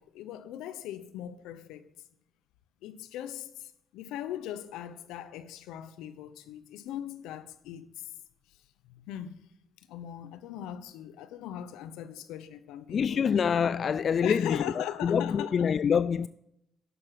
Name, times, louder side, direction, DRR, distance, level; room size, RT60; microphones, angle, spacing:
voice 1, 0.0-1.9 2.8-8.0 8.9-9.5 9.9-13.4 14.2-15.7, left 11 dB, 90° left, 0.8 m, -40 dB
voice 2, 12.9-16.3, left 7 dB, 60° left, 0.3 m, -26 dB
11.0 x 6.8 x 5.8 m
supercardioid pair, 55°, 0 cm